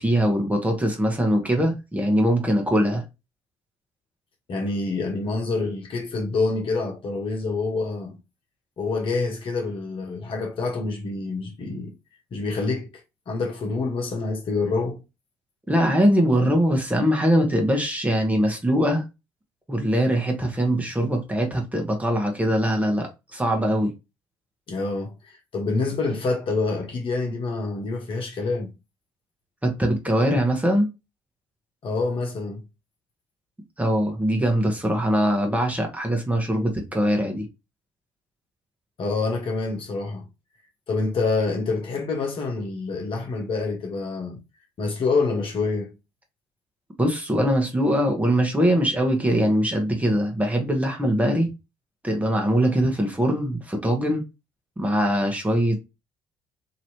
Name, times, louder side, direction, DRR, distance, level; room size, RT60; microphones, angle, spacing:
voice 1, 0.0-3.1 15.7-19.0 19.7-23.9 29.6-30.9 33.8-37.5 47.0-51.5 52.0-54.2 54.8-55.8, equal, 15° right, 1.2 m, -22 dB
voice 2, 4.5-8.2 8.8-11.9 12.3-13.0 13.3-15.0 24.7-28.7 31.8-32.6 39.0-40.3 40.9-44.4 44.8-45.9, left 3 dB, 50° left, 1.2 m, -27 dB
2.9 x 2.9 x 2.8 m
hypercardioid pair, 50°, 11 cm